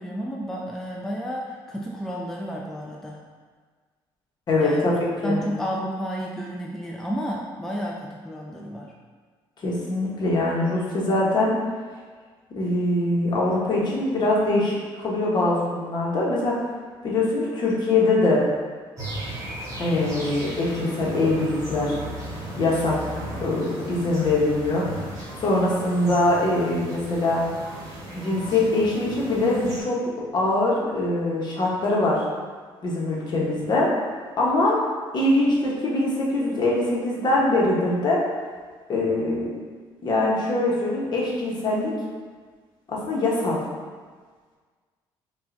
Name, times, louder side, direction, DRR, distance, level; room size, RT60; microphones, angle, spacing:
voice 1, 0.0-3.2 4.6-8.9, equal, 5° left, -3 dB, 0.4 m, -31 dB
voice 2, 4.5-5.4 9.6-11.6 12.5-16.6 17.0-18.4 19.8-22.0 22.6-23.1 23.4-25.0 25.4-27.4 28.1-30.0 30.3-32.2 32.8-33.9 34.4-34.8 35.1-38.2 38.9-39.5 40.0-41.9 42.9-43.6, left 2 dB, 45° left, -4 dB, 1.1 m, -23 dB
sound 1, 19.0-29.8, right 1 dB, 35° right, 1.2 m, -36 dB
5.4 x 2.4 x 2.6 m, 1.5 s
cardioid pair, 90°, 10 cm